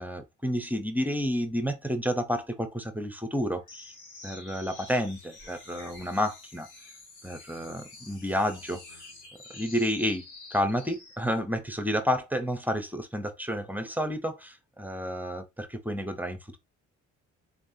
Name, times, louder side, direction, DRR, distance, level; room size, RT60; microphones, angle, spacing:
voice 1, 0.0-3.9 4.2-6.7 7.2-9.0 9.5-10.2 10.5-16.6, equal, 5° right, 0.8 m, -30 dB
sound 1, 3.7-11.2, left 2 dB, 85° left, 1.7 m, -48 dB
4.2 x 3.2 x 2.7 m
cardioid pair, 90°, 30 cm